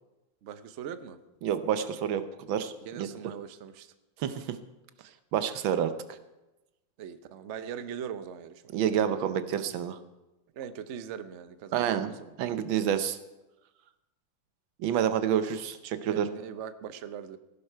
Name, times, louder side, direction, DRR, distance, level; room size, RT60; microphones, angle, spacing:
voice 1, 0.4-1.2 2.8-3.9 7.0-8.8 10.5-12.4 16.1-17.4, right 8 dB, 65° right, 12 dB, 0.7 m, -41 dB
voice 2, 1.4-2.2 2.5-3.1 4.2-4.6 5.3-5.9 8.7-10.0 11.7-12.1 12.4-13.2 14.8-16.3, right 9 dB, 85° right, 11 dB, 1.6 m, -28 dB
15.5 x 11.0 x 4.5 m, 1.0 s
omnidirectional pair, 2.1 m